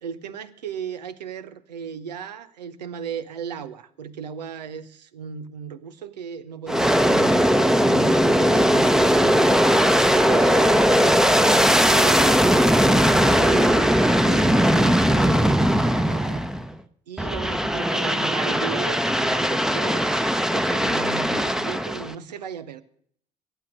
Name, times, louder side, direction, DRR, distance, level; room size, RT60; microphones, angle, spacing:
voice 1, 0.0-9.6 10.1-16.4 17.1-22.8, right 7 dB, 90° right, 13 dB, 0.7 m, -36 dB
Aircraft, 6.7-16.7 17.2-22.1, equal, ahead, 0.8 m, -19 dB
15.0 x 8.9 x 6.2 m, 0.64 s
hypercardioid pair, 55°, 21 cm